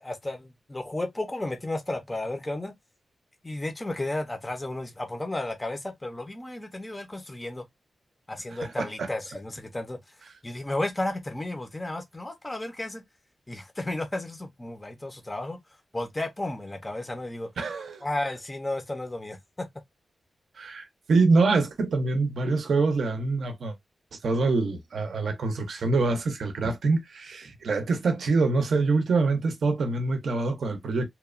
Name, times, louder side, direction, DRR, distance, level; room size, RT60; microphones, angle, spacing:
voice 1, 0.0-2.7 3.4-7.6 8.3-10.0 10.4-13.0 13.5-15.6 15.9-17.5 18.0-19.7, left 1 dB, 15° left, 0.4 m, -33 dB
voice 2, 8.5-9.1 17.6-18.0 20.6-23.7 24.2-31.1, right 3 dB, 65° right, 0.5 m, -25 dB
2.8 x 2.1 x 2.3 m
wide cardioid pair, 175°, 0 cm